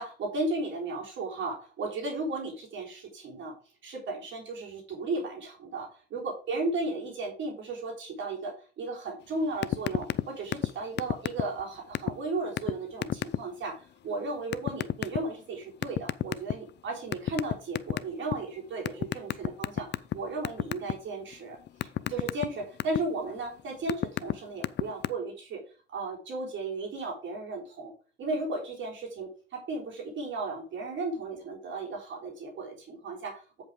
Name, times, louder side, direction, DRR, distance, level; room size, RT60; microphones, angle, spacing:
voice 1, 0.0-3.6 3.8-25.6 25.9-27.9 28.2-33.6, right 2 dB, 70° right, 0 dB, 3.6 m, -35 dB
sound 1, 9.6-10.2 10.5-10.7 11.0-11.6 11.9-12.1 12.6-12.7 13.0-13.4 14.5-15.2 15.8-16.7 17.1-18.3 18.9-20.1 20.4-20.9 21.3-23.0 23.6-24.3 24.6-25.1, left 12 dB, 60° left, 0.5 m, -28 dB
8.2 x 5.4 x 4.9 m, 0.37 s
cardioid pair, 90°, 20 cm